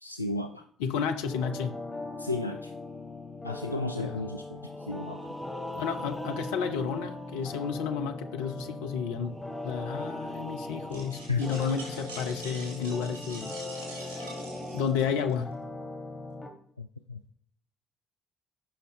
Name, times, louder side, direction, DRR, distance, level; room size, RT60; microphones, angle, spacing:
voice 1, 0.0-0.6 2.2-2.7 3.4-5.2 11.3-11.4 16.8-17.3, left 2 dB, 90° left, 0.3 m, -33 dB
voice 2, 0.8-1.8 4.0-4.2 5.8-9.3 9.6-13.5 14.0-14.3 14.7-15.6, left 6 dB, 70° left, 0.8 m, -31 dB
sound 1, 1.2-16.5, left 2 dB, 15° left, 2.5 m, -40 dB
sound 2, 2.5-3.4 4.6-8.1 9.1-11.6 13.4-14.8, right 1 dB, 15° right, 0.8 m, -44 dB
sound 3, 10.9-15.3, right 2 dB, 75° right, 2.5 m, -44 dB
14.5 x 5.6 x 3.2 m
figure-of-eight pair, 45°, 0 cm